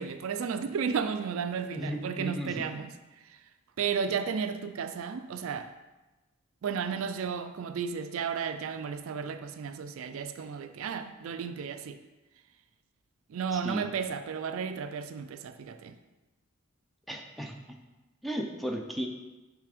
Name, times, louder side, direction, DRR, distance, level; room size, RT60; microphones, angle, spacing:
voice 1, 0.0-2.9 3.8-5.7 6.6-12.0 13.3-16.0, right 6 dB, 65° right, 0.4 m, -33 dB
voice 2, 1.7-2.6 13.5-13.9 17.1-17.6 18.2-19.1, equal, ahead, 0.5 m, -35 dB
6.8 x 3.4 x 5.0 m
head